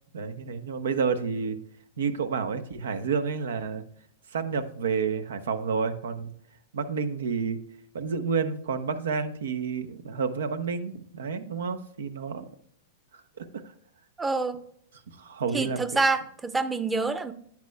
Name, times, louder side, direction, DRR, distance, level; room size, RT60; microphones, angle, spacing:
voice 1, 0.1-1.6 2.0-3.8 4.3-6.3 6.7-7.6 7.9-12.5 13.4-13.6 15.1-15.8, right 5 dB, 75° right, 10 dB, 0.8 m, -30 dB
voice 2, 14.2-14.6 15.5-17.3, right 3 dB, 10° right, 11 dB, 0.7 m, -27 dB
10.5 x 8.5 x 2.2 m, 0.68 s
hypercardioid pair, 110°, 0 cm